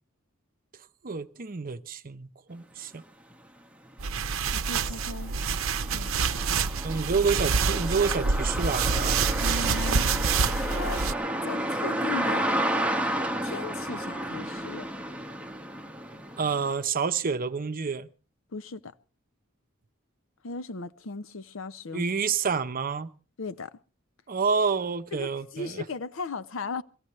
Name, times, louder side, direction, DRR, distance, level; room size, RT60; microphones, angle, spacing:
voice 1, 1.0-3.0 6.8-9.3 16.4-18.1 21.9-23.1 24.3-25.8, right 5 dB, 45° right, 0.7 m, -28 dB
sound 1, 3.3-3.4 3.9-16.7, right 1 dB, 5° right, 1.0 m, -32 dB
sound 2, 4.0-11.1, right 5 dB, 80° right, 0.7 m, -27 dB
voice 2, 4.5-5.3 5.9-6.1 9.4-10.1 10.5-11.1 11.4-12.5 13.4-14.9 18.5-18.9 20.4-22.1 23.4-23.8 25.1-26.8, left 3 dB, 70° left, 0.6 m, -37 dB
23.0 x 16.0 x 3.1 m
head